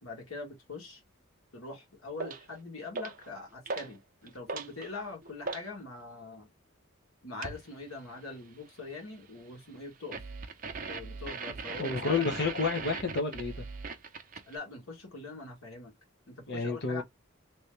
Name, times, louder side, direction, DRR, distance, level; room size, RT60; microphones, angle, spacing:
voice 1, 0.0-1.0 1.5-6.5 7.2-10.2 10.8-12.3 14.5-15.9 16.3-17.0, left 3 dB, 85° left, 1.7 m, -43 dB
sound 1, 2.2-2.5 2.9-3.3 3.7-4.0 4.3-5.7 7.4-7.7 10.1-14.6, right 4 dB, 40° right, 0.6 m, -39 dB
voice 2, 11.8-13.6 16.5-17.0, left 4 dB, 55° left, 0.8 m, -30 dB
3.1 x 2.8 x 3.2 m
head